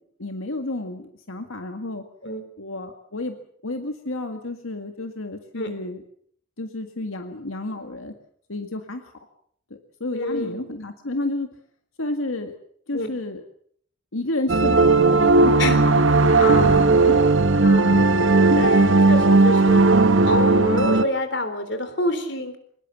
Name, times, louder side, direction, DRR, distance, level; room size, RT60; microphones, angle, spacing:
voice 1, 0.2-2.0 2.6-3.4 3.6-6.0 6.6-8.1 8.5-9.1 10.0-11.5 12.0-12.5 12.9-13.4 14.1-15.6 16.1-17.2 17.7-17.8, left 2 dB, 90° left, 6 dB, 2.0 m, -31 dB
voice 2, 10.1-10.7 12.9-13.1 15.6-15.8 16.4-17.0 17.6-18.1 18.5-19.8 20.2-22.6, left 1 dB, 55° left, 10 dB, 3.7 m, -27 dB
sound 1, 14.5-21.0, right 3 dB, 70° right, 1.2 m, -16 dB
23.5 x 21.0 x 7.2 m, 0.63 s
head